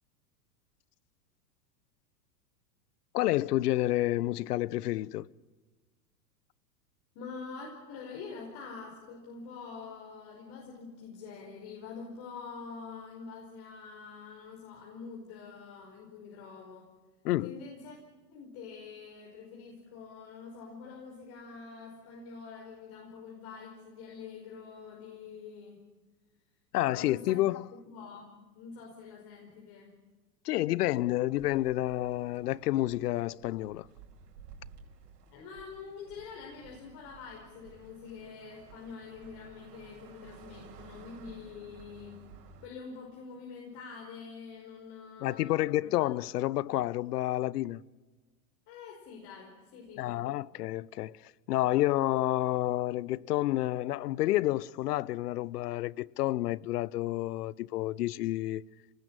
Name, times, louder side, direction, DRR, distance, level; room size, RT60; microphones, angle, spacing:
voice 1, 3.1-5.3 17.2-17.6 26.7-27.6 30.4-33.9 45.2-47.8 50.0-51.2 51.5-58.6, left 16 dB, 70° left, 0.8 m, -29 dB
voice 2, 7.2-16.9 17.4-18.0 18.3-25.8 26.9-27.5 27.9-30.0 35.3-42.2 42.6-46.1 48.7-50.3, left 5 dB, 50° left, 5.3 m, -46 dB
sound 1, 31.3-42.7, right 6 dB, 70° right, 5.3 m, -54 dB
26.5 x 19.5 x 8.9 m
hypercardioid pair, 115°, 49 cm